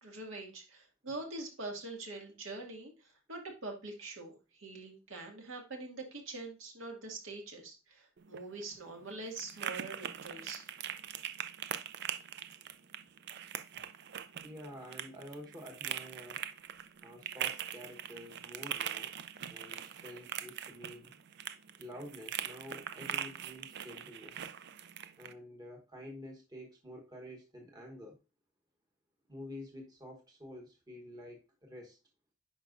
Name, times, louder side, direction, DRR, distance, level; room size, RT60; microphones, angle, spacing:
voice 1, 0.0-10.7, right 2 dB, 75° right, 1 dB, 2.0 m, -44 dB
sound 1, 8.2-25.3, right 9 dB, 60° right, 0.5 m, -42 dB
voice 2, 14.4-16.4 17.0-19.1 19.5-21.1 21.7-24.5 25.2-28.2 29.3-32.0, left 1 dB, 20° right, 0 dB, 1.1 m, -49 dB
10.0 x 4.8 x 2.5 m, 0.29 s
head